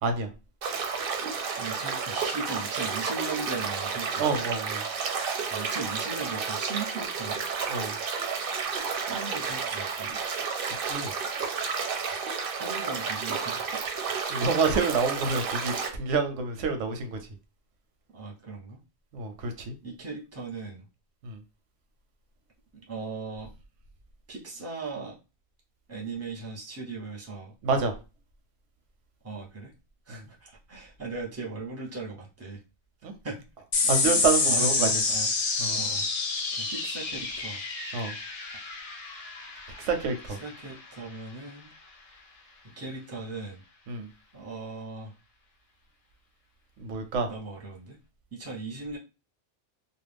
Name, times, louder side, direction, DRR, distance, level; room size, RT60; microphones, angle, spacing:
sound 1, 0.6-15.9, right 5 dB, 60° right, 0.6 m, -31 dB
voice 1, 1.6-4.3 5.5-7.4 9.1-10.2 12.5-13.8 18.1-18.8 19.8-20.9 22.7-23.5 24.3-25.2 25.9-27.5 29.2-29.7 30.1-32.6 33.2-33.4 34.0-35.3 35.7-36.1 36.6-37.6 40.3-41.7 42.6-43.6 44.3-45.1 47.3-48.0 48.3-49.0, right 3 dB, 15° right, -3 dB, 0.6 m, -38 dB
voice 2, 4.2-4.8 7.7-7.9 10.8-11.1 14.3-17.2 19.1-19.7 21.2-21.4 27.6-27.9 30.1-30.2 33.0-33.1 33.9-34.9 35.6-35.8 37.9-38.1 39.8-40.4 43.9-44.1 46.8-47.3, right 4 dB, 85° right, 7 dB, 1.0 m, -28 dB
sound 2, 33.7-40.5, left 4 dB, 50° left, 0.4 m, -28 dB
2.4 x 2.1 x 3.3 m, 0.30 s
omnidirectional pair, 1.2 m